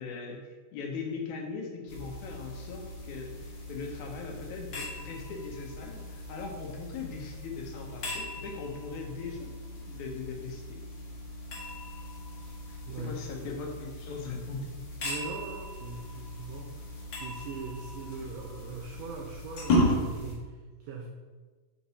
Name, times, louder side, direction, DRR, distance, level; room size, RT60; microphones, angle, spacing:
voice 1, 0.0-9.5 9.9-10.8 12.7-14.7, left 4 dB, 80° left, 1 dB, 2.2 m, -40 dB
sound 1, 1.9-20.3, left 1 dB, 50° left, 1.5 m, -36 dB
voice 2, 12.8-13.1 15.0-21.1, right 4 dB, 75° right, 1 dB, 1.6 m, -41 dB
5.5 x 5.2 x 4.1 m, 1.4 s
omnidirectional pair, 3.5 m